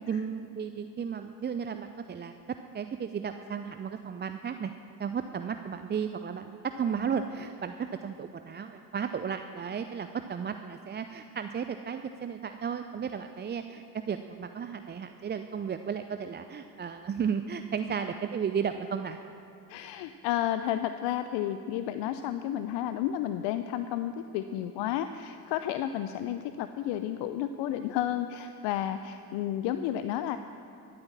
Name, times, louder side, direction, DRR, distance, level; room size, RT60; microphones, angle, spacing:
voice 1, 0.1-2.3 2.7-4.7 5.0-7.7 8.0-19.2, right 7 dB, 20° right, 8 dB, 0.5 m, -34 dB
voice 2, 19.7-30.4, left 11 dB, 60° left, 10 dB, 0.6 m, -32 dB
13.5 x 9.5 x 7.4 m, 2.8 s
hypercardioid pair, 50°, 48 cm